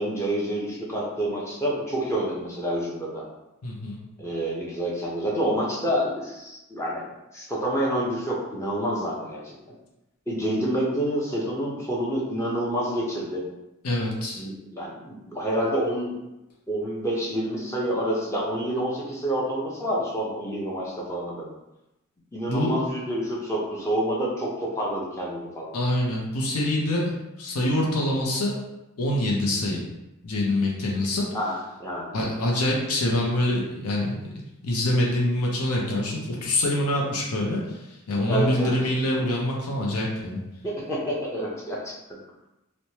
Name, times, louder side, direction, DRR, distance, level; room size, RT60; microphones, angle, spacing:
voice 1, 0.0-3.2 4.2-7.0 7.3-9.5 10.3-13.4 14.4-16.2 16.7-21.5 22.3-25.7 31.3-32.1 38.3-38.7 40.6-42.0, right 1 dB, 10° left, -5 dB, 0.5 m, -28 dB
voice 2, 3.6-4.0 13.8-14.4 22.5-22.7 25.7-28.6 29.0-29.8 30.2-31.2 32.1-34.3 34.6-40.4, left 1 dB, 75° left, -2 dB, 0.6 m, -25 dB
3.1 x 2.1 x 2.8 m, 0.93 s
head